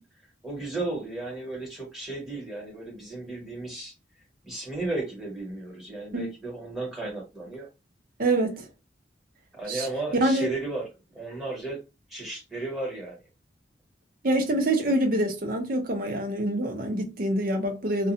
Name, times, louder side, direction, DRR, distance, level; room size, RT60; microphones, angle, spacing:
voice 1, 0.4-3.9 4.4-7.7 9.5-10.9 11.1-11.8 12.1-13.2, right 2 dB, ahead, 1.3 m, -34 dB
voice 2, 8.2-8.7 9.7-9.9 10.1-10.5 14.2-18.1, right 1 dB, 50° right, 0.7 m, -25 dB
2.4 x 2.2 x 2.7 m
head